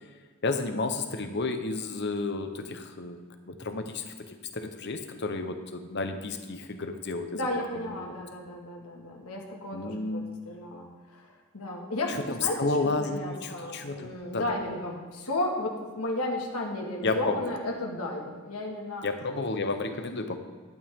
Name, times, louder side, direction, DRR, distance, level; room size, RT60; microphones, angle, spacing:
voice 1, 0.4-7.4 9.7-10.3 12.1-14.4 17.0-17.4 19.0-20.4, left 3 dB, 50° left, 7 dB, 0.9 m, -31 dB
voice 2, 7.3-19.1, left 1 dB, 85° left, -1 dB, 1.9 m, -34 dB
11.5 x 11.0 x 3.6 m, 1.5 s
head